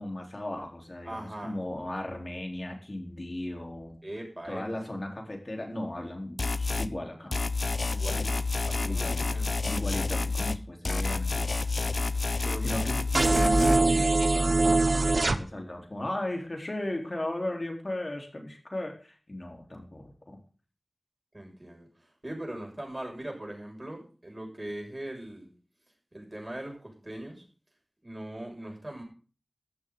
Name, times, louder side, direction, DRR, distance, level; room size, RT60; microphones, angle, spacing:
voice 1, 0.0-4.0 4.4-7.3 8.8-11.7 12.2-20.4, left 1 dB, 45° left, 1 dB, 4.1 m, -36 dB
voice 2, 1.0-1.6 4.0-4.9 7.9-9.5 12.1-12.9 21.3-25.5 26.1-27.4 28.0-29.0, right 1 dB, 30° right, 1 dB, 6.6 m, -40 dB
sound 1, 6.4-6.9 7.3-10.6 10.8-13.8, left 3 dB, 70° left, 0.7 m, -29 dB
sound 2, 13.1-15.4, right 2 dB, 65° right, 1.0 m, -22 dB
15.0 x 12.0 x 4.0 m, 0.38 s
wide cardioid pair, 65°, 0 cm